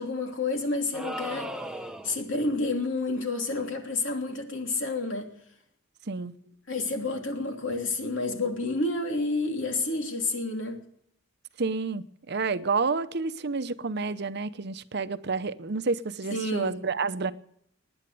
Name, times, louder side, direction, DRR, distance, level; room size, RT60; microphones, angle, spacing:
voice 1, 0.0-1.5 2.0-5.3 6.7-10.8 16.3-16.8, left 3 dB, 70° left, 3.0 m, -29 dB
sound 1, 0.9-2.3, right 1 dB, 5° right, 0.8 m, -36 dB
voice 2, 11.6-17.3, right 4 dB, 55° right, 0.8 m, -29 dB
19.0 x 9.8 x 7.6 m
head